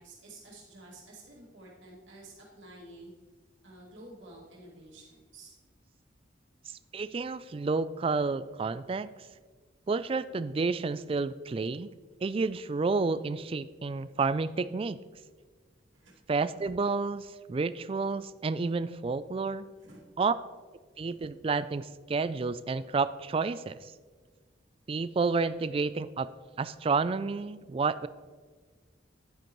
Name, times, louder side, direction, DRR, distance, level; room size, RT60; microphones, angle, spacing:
voice 1, 0.0-3.1 3.6-5.5 15.9-16.1 19.8-20.0, right 2 dB, 80° right, -5 dB, 2.3 m, -50 dB
voice 2, 6.9-9.1 9.9-11.9 12.2-15.0 16.3-19.6 20.2-20.3 21.0-23.9 24.9-26.3 26.6-28.1, right 4 dB, 30° right, 14 dB, 0.3 m, -30 dB
10.5 x 9.6 x 3.1 m, 1.5 s
head